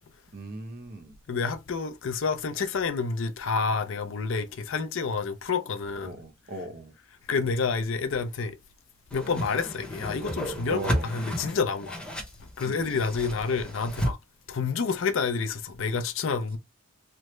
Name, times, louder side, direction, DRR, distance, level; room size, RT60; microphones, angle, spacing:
voice 1, 0.3-1.2 6.0-6.9 10.7-11.2 12.6-13.0, right 2 dB, 40° right, 0.7 m, -38 dB
voice 2, 1.3-6.1 7.3-8.6 9.1-12.0 12.6-14.2 14.5-16.6, left 5 dB, 60° left, 0.4 m, -29 dB
Whoosh swoosh swish, 9.1-14.1, equal, 5° left, 0.8 m, -33 dB
3.3 x 2.0 x 3.0 m
head